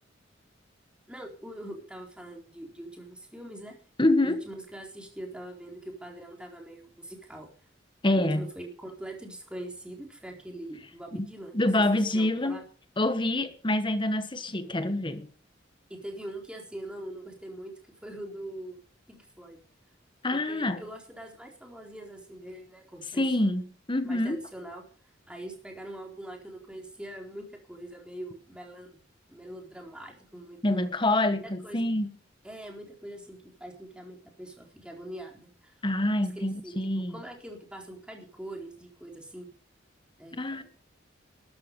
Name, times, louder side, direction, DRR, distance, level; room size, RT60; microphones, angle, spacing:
voice 1, 1.1-3.8 4.2-7.5 8.2-11.5 12.1-12.6 15.9-17.7 18.0-18.8 19.1-19.6 20.3-23.2 24.0-24.8 25.3-29.0 29.3-30.9 31.4-31.8 32.4-35.8 36.4-39.5 40.2-40.6, right 1 dB, 5° right, 4.0 m, -43 dB
voice 2, 4.0-4.4 8.0-8.4 11.2-11.3 11.5-12.6 13.0-15.3 20.2-20.8 23.2-23.6 23.9-24.4 30.6-32.1 35.8-37.2 40.3-40.6, left 1 dB, 25° left, 1.3 m, -26 dB
13.5 x 11.5 x 5.4 m
head